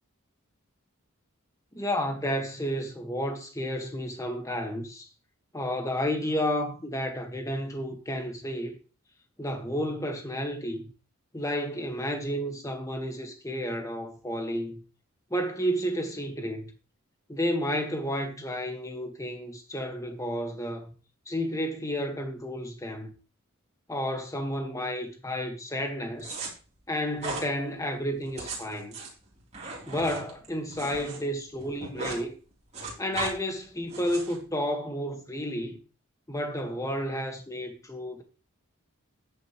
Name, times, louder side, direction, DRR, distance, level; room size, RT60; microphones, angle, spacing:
voice 1, 1.7-5.1 5.5-8.8 9.4-10.9 11.3-14.8 15.3-16.7 17.3-20.9 21.3-23.1 23.9-26.4 26.9-29.0 29.9-32.3 33.0-35.8 36.3-38.2, equal, 15° left, 1.6 m, -31 dB
sound 1, 26.2-26.5 27.2-27.5 28.2-31.2 31.5-32.2 32.5-33.3 33.9-34.4, right 3 dB, 30° right, 3.5 m, -37 dB
12.5 x 9.2 x 3.1 m
head